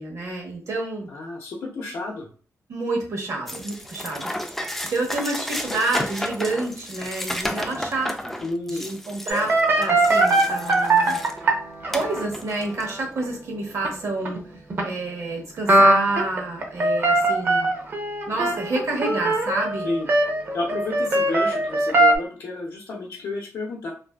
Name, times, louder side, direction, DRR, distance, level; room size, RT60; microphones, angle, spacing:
voice 1, 0.0-1.1 2.7-4.3 4.9-8.2 8.7-11.2 11.9-14.5 14.8-17.7 18.3-19.9, right 2 dB, 60° right, 0 dB, 0.9 m, -28 dB
voice 2, 1.1-2.3 8.4-8.8 19.8-20.1 20.5-23.9, left 2 dB, 85° left, -3 dB, 0.6 m, -30 dB
sound 1, 3.5-11.4 11.9-12.9, left 1 dB, 5° left, 0.3 m, -32 dB
sound 2, 9.3-12.2 12.8-12.9 13.2-13.3 13.8-14.4 14.7-14.8 15.7-22.1, right 2 dB, 45° right, 0.6 m, -21 dB
2.6 x 2.4 x 2.2 m, 0.40 s
wide cardioid pair, 120°, 6 cm